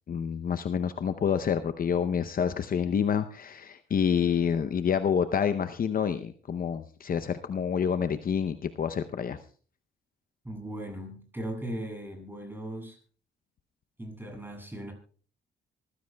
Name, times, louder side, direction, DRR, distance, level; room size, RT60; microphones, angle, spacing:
voice 1, 0.1-9.4, left 7 dB, 45° left, 10 dB, 0.7 m, -28 dB
voice 2, 10.4-13.0 14.0-14.9, right 1 dB, 10° right, 2 dB, 7.0 m, -38 dB
25.0 x 15.0 x 2.3 m, 0.41 s
cardioid pair, 90°, 20 cm